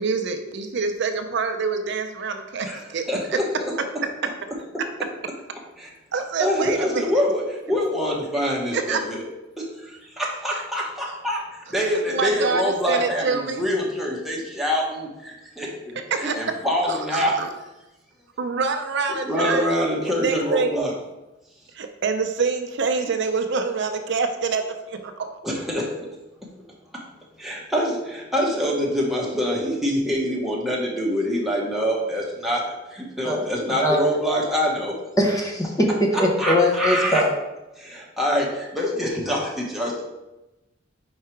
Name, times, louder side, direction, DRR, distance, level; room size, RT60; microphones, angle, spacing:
voice 1, 0.0-3.0 6.1-7.0 8.7-9.0 12.1-13.6 16.1-16.4 16.9-17.5 18.4-19.7 20.1-20.7 21.7-25.2, right 4 dB, 65° right, 6 dB, 0.5 m, -26 dB
voice 2, 3.1-3.7 5.8-5.9 6.4-9.2 9.6-17.4 19.1-20.9 25.4-25.9 27.4-34.9 36.4-37.2 37.8-40.0, equal, ahead, -4 dB, 1.1 m, -25 dB
voice 3, 35.2-37.3, left 1 dB, 20° left, 0 dB, 0.9 m, -21 dB
4.7 x 4.6 x 4.5 m, 1.0 s
head